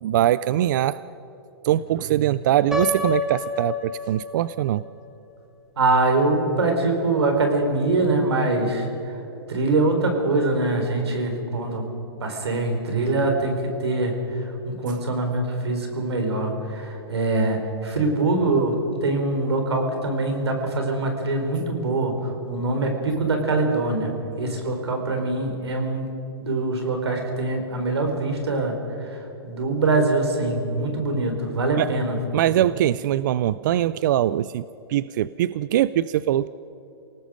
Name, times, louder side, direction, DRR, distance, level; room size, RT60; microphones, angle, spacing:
voice 1, 0.0-1.0 1.6-4.8 31.8-31.9 32.3-34.6 34.9-36.5, right 12 dB, 50° right, 17 dB, 0.4 m, -22 dB
Piano, 2.7-4.7, left 2 dB, 5° right, 1.8 m, -28 dB
voice 2, 5.8-9.2 9.5-11.9 12.2-24.1 24.4-26.1 26.4-32.2, right 2 dB, 90° right, 3 dB, 4.9 m, -23 dB
28.5 x 18.5 x 5.2 m, 3.0 s
hypercardioid pair, 150°, 13 cm